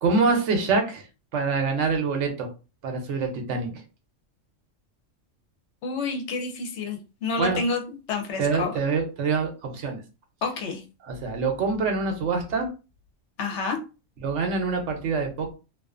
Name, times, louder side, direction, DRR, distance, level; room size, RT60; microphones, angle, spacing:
voice 1, 0.0-1.0 1.3-2.5 2.8-3.8 7.4-7.6 8.4-10.0 11.0-12.7 14.2-15.5, right 4 dB, 70° right, 3 dB, 1.0 m, -25 dB
voice 2, 5.8-7.8 8.1-8.7 10.4-10.8 13.4-13.8, left 4 dB, 70° left, 4 dB, 0.9 m, -29 dB
2.4 x 2.4 x 2.4 m, 0.31 s
omnidirectional pair, 1.3 m